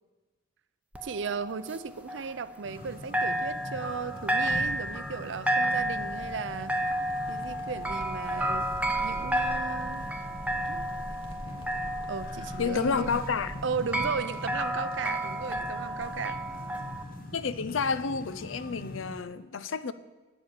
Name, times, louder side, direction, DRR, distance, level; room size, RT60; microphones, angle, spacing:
sound 1, 0.9-2.9 3.1-17.0, right 1 dB, 5° right, 0.7 m, -32 dB
voice 1, 1.0-6.7 7.3-8.7 9.0-10.1 10.7-10.8 12.1-13.2 13.6-16.4, right 5 dB, 65° right, 0.5 m, -36 dB
sound 2, 2.6-19.2, left 1 dB, 45° left, 0.9 m, -42 dB
Crackle, 5.7-13.5, equal, 25° left, 1.4 m, -49 dB
voice 2, 12.6-13.6 17.3-19.9, left 5 dB, 75° left, 0.6 m, -30 dB
9.0 x 7.5 x 8.7 m
head